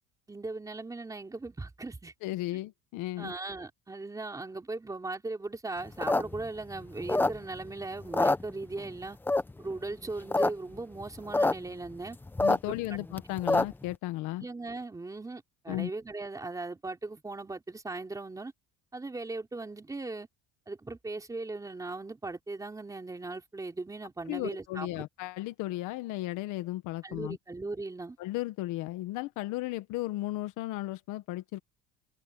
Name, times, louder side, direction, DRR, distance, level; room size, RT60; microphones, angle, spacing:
voice 1, 0.3-2.1 3.2-9.2 9.6-12.2 12.6-13.0 14.4-18.5 18.9-20.3 20.7-25.1 27.0-28.2, right 3 dB, 10° right, 3.3 m, -38 dB
voice 2, 2.2-3.3 12.4-14.4 15.7-15.9 24.3-27.4 28.2-31.6, left 17 dB, 70° left, 1.6 m, -35 dB
sound 1, 5.9-7.7 8.0-8.9 9.3-9.7 10.1-10.5 10.7-10.8 11.0-11.5 11.9-13.9, left 2 dB, 5° left, 0.7 m, -26 dB
cardioid pair, 155°, 32 cm